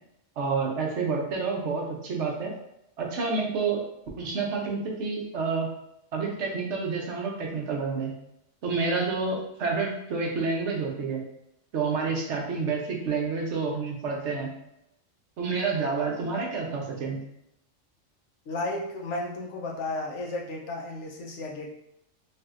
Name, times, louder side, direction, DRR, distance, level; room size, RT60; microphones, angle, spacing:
voice 1, 0.4-2.5 3.0-3.8 4.2-5.7 6.1-8.1 8.6-11.2 11.7-14.5 15.4-17.2, right 4 dB, 65° right, -1 dB, 0.9 m, -29 dB
voice 2, 18.5-21.7, left 2 dB, 65° left, 0 dB, 0.9 m, -33 dB
3.3 x 2.6 x 2.4 m, 0.80 s
omnidirectional pair, 1.4 m